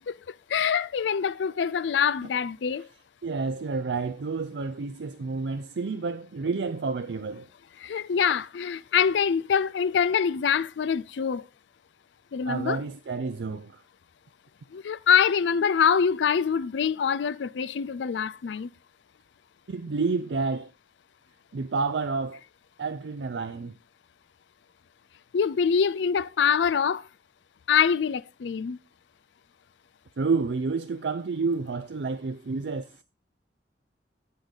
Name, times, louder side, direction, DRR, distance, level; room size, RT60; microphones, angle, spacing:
voice 1, 0.1-2.9 7.8-11.4 12.3-12.8 14.7-18.7 25.3-27.0 27.7-28.8, left 7 dB, 80° left, 0.4 m, -25 dB
voice 2, 3.2-7.5 12.5-13.7 19.7-20.7 21.5-22.4 22.8-23.7 30.2-32.8, right 4 dB, 70° right, 0.5 m, -29 dB
8.3 x 8.1 x 3.9 m
head